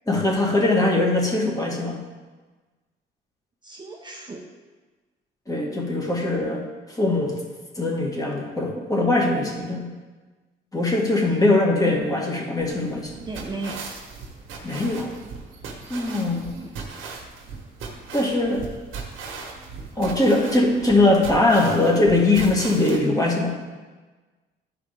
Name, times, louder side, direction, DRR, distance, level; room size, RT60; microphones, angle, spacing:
voice 1, 0.1-2.0 5.5-7.4 7.8-9.9 10.7-13.1 14.6-15.1 15.9-16.5 18.1-18.6 20.0-23.6, left 2 dB, 15° left, -2 dB, 1.8 m, -21 dB
voice 2, 3.6-4.4 9.4-9.6 11.3-11.5 13.2-13.8 16.5-16.7, right 3 dB, 20° right, 0 dB, 0.8 m, -36 dB
sound 1, 12.6-23.0, right 4 dB, 85° right, 1.4 m, -38 dB
11.5 x 4.9 x 3.5 m, 1.3 s
cardioid pair, 90°, 20 cm